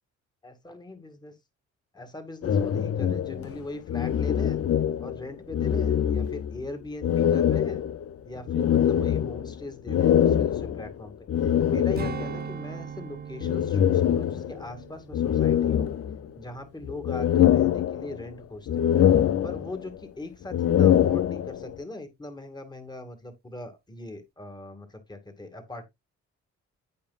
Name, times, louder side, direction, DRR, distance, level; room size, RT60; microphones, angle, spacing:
voice 1, 0.4-1.4 1.9-4.6 5.0-7.8 8.3-11.1 11.4-15.9 16.4-18.9 19.4-25.8, left 2 dB, 15° left, 2.2 m, -40 dB
sound 1, 2.4-5.2 5.5-6.6 7.0-12.4 13.4-14.7 15.1-16.4 16.8-18.3 18.7-20.0 20.4-21.7, left 10 dB, 50° left, 0.6 m, -24 dB
Strum, 12.0-16.7 17.0-17.3, right 8 dB, 30° right, 0.8 m, -40 dB
15.0 x 5.1 x 2.5 m
cardioid pair, 90°, 30 cm